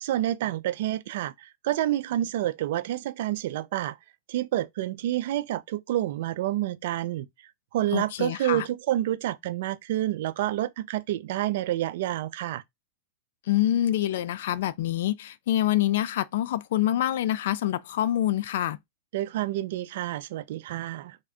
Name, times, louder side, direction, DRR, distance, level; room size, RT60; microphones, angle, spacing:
voice 1, 0.0-4.0 4.3-7.3 7.7-12.6 19.1-21.2, right 13 dB, 60° right, 0.3 m, -28 dB
voice 2, 7.9-8.7 13.5-18.8, left 12 dB, 65° left, 0.3 m, -26 dB
3.5 x 2.1 x 3.7 m
supercardioid pair, 155°, 0 cm